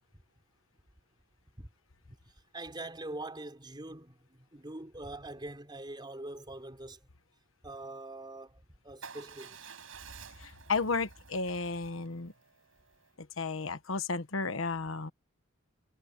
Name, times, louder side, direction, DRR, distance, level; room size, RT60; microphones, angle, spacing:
voice 1, 2.1-7.1 7.6-9.7, right 2 dB, 20° right, 4.1 m, -44 dB
Motorcycle / Engine starting / Idling, 9.0-13.1, right 5 dB, 75° right, 7.0 m, -51 dB
voice 2, 10.4-12.3 13.4-15.1, left 4 dB, 70° left, 1.3 m, -33 dB
head